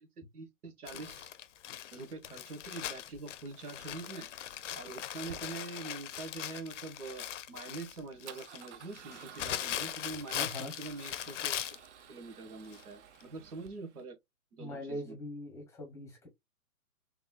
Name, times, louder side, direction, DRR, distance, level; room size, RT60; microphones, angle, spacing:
voice 1, 0.3-1.3 1.9-4.3 4.7-11.8 12.1-14.1 14.5-15.2, right 3 dB, 85° right, 1.5 m, -44 dB
Crumpling crinkling, 0.9-11.9 12.7-12.8 13.2-13.3, left 11 dB, 55° left, 0.6 m, -40 dB
Male speech man speaking / Car / Engine starting, 3.0-14.0, right 9 dB, 55° right, 0.6 m, -55 dB
voice 2, 10.3-10.7 14.6-16.3, left 1 dB, 5° left, 0.8 m, -41 dB
4.1 x 3.2 x 2.3 m
hypercardioid pair, 140°, 44 cm